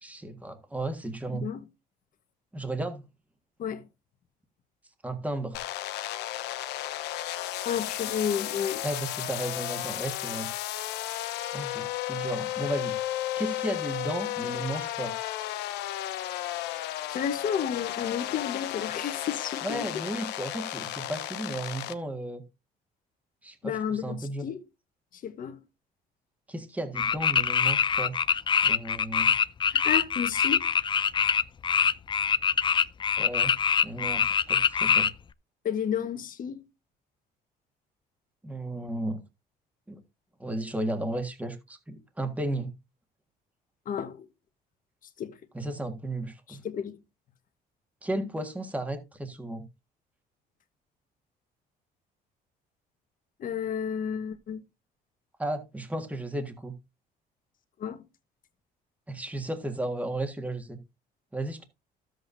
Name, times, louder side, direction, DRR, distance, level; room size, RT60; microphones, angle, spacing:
voice 1, 0.0-1.4 2.5-3.1 5.0-5.6 8.8-10.5 11.5-13.0 13.4-15.1 19.6-22.4 23.4-24.5 26.5-28.1 28.6-29.3 33.2-35.1 38.4-39.2 39.9-40.0 40.4-42.8 45.5-46.6 48.0-49.6 55.4-56.7 59.1-60.8 61.3-61.6, right 1 dB, 10° right, 1.7 m, -34 dB
sound 1, 5.5-21.9, left 14 dB, 85° left, 0.9 m, -34 dB
voice 2, 7.6-8.8 17.1-19.9 23.6-24.6 25.1-25.6 29.7-30.6 35.6-36.6 43.8-44.3 45.2-45.4 46.5-47.0 53.4-54.6 57.8-58.0, left 8 dB, 55° left, 1.4 m, -31 dB
sound 2, 26.9-35.1, left 7 dB, 30° left, 0.5 m, -24 dB
13.0 x 7.9 x 2.6 m
cardioid pair, 110°, 17 cm